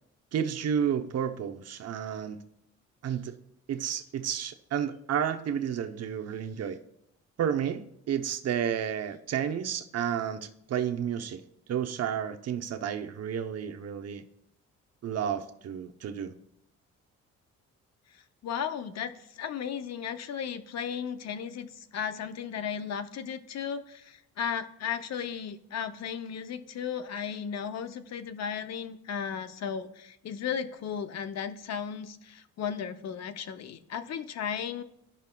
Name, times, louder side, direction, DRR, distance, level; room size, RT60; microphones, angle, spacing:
voice 1, 0.3-2.4 3.0-3.4 3.7-6.8 7.4-11.4 11.7-14.2 15.0-16.4, right 8 dB, 55° right, 8 dB, 0.7 m, -31 dB
voice 2, 18.4-34.8, left 7 dB, 60° left, 11 dB, 0.6 m, -35 dB
14.5 x 5.7 x 2.2 m, 0.78 s
cardioid pair, 90°, 30 cm